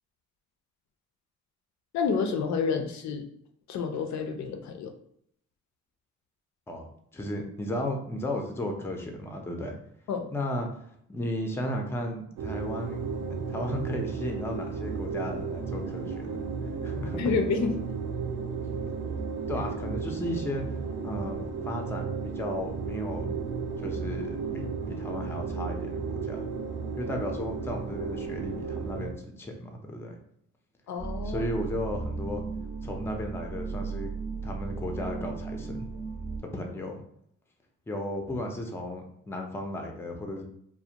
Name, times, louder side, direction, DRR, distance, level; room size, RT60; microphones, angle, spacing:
voice 1, 1.9-3.3 3.7-4.9 10.1-10.3 17.2-17.8 30.9-31.4, left 5 dB, 70° left, 6 dB, 0.4 m, -29 dB
voice 2, 7.1-9.8 10.3-10.7 11.1-13.0 13.5-17.2 19.5-20.6 21.0-21.4 21.6-23.3 23.8-26.4 27.0-30.2 31.2-32.4 32.8-34.1 34.4-35.9 36.4-37.0 37.9-40.4, left 1 dB, 10° left, 3 dB, 0.4 m, -34 dB
sound 1, 12.4-29.1, right 5 dB, 90° right, 0.5 m, -34 dB
sound 2, 31.0-36.4, right 4 dB, 40° right, 0.6 m, -35 dB
2.5 x 2.0 x 2.8 m, 0.69 s
cardioid pair, 90°, 30 cm